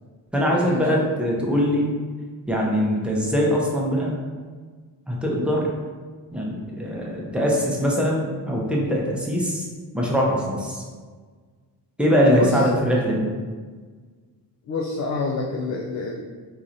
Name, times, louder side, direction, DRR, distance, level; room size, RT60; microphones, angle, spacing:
voice 1, 0.3-1.9 2.5-4.1 5.1-5.7 6.3-9.7 9.9-10.8 12.0-13.3, equal, 5° right, -3 dB, 0.7 m, -22 dB
voice 2, 14.7-16.2, left 3 dB, 45° left, -1 dB, 0.4 m, -27 dB
3.8 x 2.9 x 2.6 m, 1.5 s
cardioid pair, 90°, 41 cm